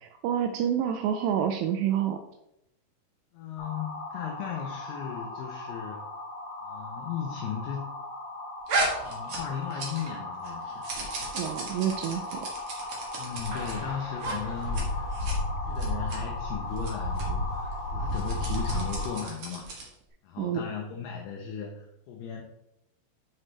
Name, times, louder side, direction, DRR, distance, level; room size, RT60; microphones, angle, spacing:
voice 1, 0.2-2.2 11.3-12.5 20.4-20.6, right 9 dB, 85° right, 6 dB, 2.4 m, -28 dB
voice 2, 3.3-6.0 6.6-7.9 9.0-10.8 13.2-15.1 15.7-19.7 20.2-22.4, left 7 dB, 80° left, 1 dB, 2.3 m, -36 dB
sound 1, 3.6-19.2, left 2 dB, 60° left, 2.1 m, -38 dB
sound 2, 8.7-10.2 10.4-13.7 14.2-14.4 14.6-14.8 15.1-15.4 15.8-16.2 16.8-16.9 17.2-17.3 18.1-19.9, right 2 dB, 70° right, 1.6 m, -34 dB
sound 3, 13.4-19.1, left 1 dB, 40° right, 2.1 m, -32 dB
7.5 x 6.2 x 3.2 m, 0.84 s
omnidirectional pair, 5.4 m